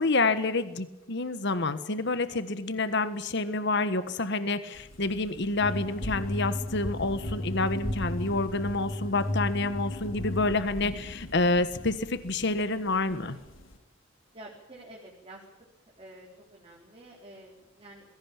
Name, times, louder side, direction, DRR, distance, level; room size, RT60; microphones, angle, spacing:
voice 1, 0.0-13.4, left 3 dB, 60° left, 13 dB, 1.4 m, -28 dB
sound 1, 4.7-13.8, equal, 80° left, 3.7 m, -43 dB
sound 2, 5.6-10.6, left 1 dB, 40° left, 2.0 m, -34 dB
voice 2, 13.0-13.5 14.3-15.4 16.0-18.1, right 1 dB, 30° right, -2 dB, 4.1 m, -49 dB
21.0 x 17.0 x 8.9 m, 0.96 s
head